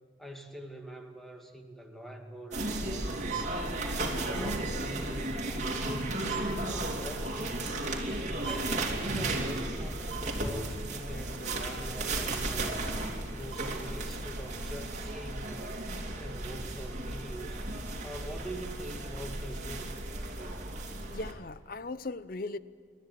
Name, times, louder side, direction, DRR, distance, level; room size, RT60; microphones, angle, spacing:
voice 1, 0.2-3.4 3.8-6.1 6.6-7.7 8.4-12.8 13.3-15.8 16.2-17.6 18.0-20.0 20.3-20.7, right 1 dB, ahead, 2.2 m, -44 dB
sound 1, 2.5-21.3, right 2 dB, 40° right, 3.0 m, -34 dB
voice 2, 20.9-22.6, left 2 dB, 50° left, 0.7 m, -38 dB
28.5 x 13.5 x 9.3 m
head